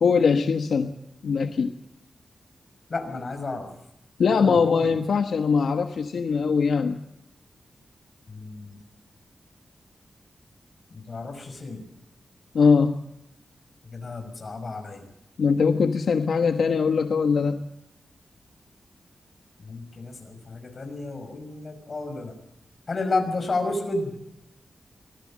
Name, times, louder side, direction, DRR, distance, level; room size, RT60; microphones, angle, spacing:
voice 1, 0.0-0.9 1.2-1.7 4.2-7.0 12.5-13.0 15.4-17.7, left 5 dB, 75° left, 7 dB, 1.3 m, -21 dB
voice 2, 2.9-3.7 4.3-5.0 8.3-8.8 10.9-11.9 13.8-15.0 19.6-22.4 22.9-24.2, left 3 dB, 40° left, 6 dB, 5.7 m, -31 dB
25.0 x 18.5 x 7.5 m, 0.85 s
wide cardioid pair, 155°, 0 cm